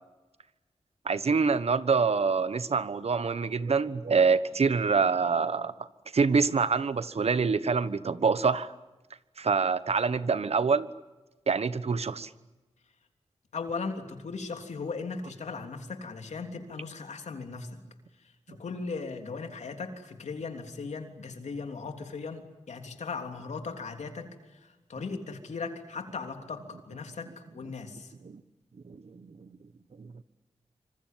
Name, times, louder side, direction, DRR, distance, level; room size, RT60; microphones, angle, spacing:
voice 1, 1.0-5.7 6.1-8.7 9.4-10.9 11.5-12.3 27.2-27.3 28.2-28.4 28.8-29.5 30.0-30.1, right 5 dB, 65° right, 14 dB, 1.2 m, -26 dB
voice 2, 13.5-17.7 18.5-24.3 24.9-27.3 27.5-28.1, left 4 dB, 85° left, 5 dB, 3.4 m, -37 dB
26.5 x 25.5 x 7.6 m, 1.1 s
wide cardioid pair, 75°, 12 cm